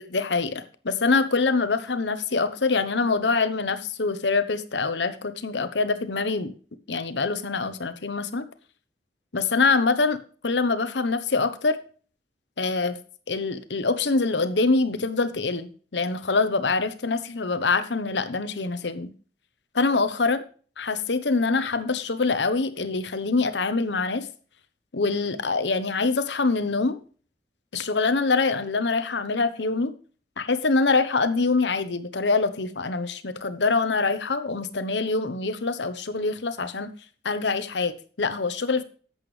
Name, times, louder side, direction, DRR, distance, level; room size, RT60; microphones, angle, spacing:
voice 1, 0.1-6.5 6.9-8.4 9.3-10.2 10.4-11.8 12.6-13.0 13.3-19.1 19.7-20.4 20.8-24.3 24.9-27.0 27.7-29.9 30.4-36.9 37.2-38.8, left 3 dB, 80° left, 12 dB, 1.0 m, -24 dB
11.5 x 8.2 x 3.3 m, 0.40 s
head